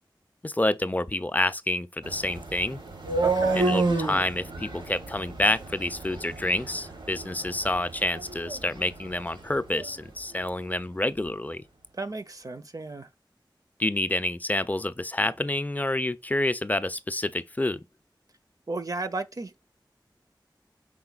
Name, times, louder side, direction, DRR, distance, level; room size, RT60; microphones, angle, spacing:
voice 1, 0.4-2.8 3.5-11.6 13.8-17.8, left 1 dB, 20° left, 0.4 m, -28 dB
sound 1, 2.0-10.0, right 3 dB, 75° right, 0.9 m, -31 dB
voice 2, 3.2-3.6 11.9-13.1 18.7-19.6, right 3 dB, 45° right, 0.5 m, -34 dB
4.8 x 3.7 x 2.3 m
wide cardioid pair, 50°, 8 cm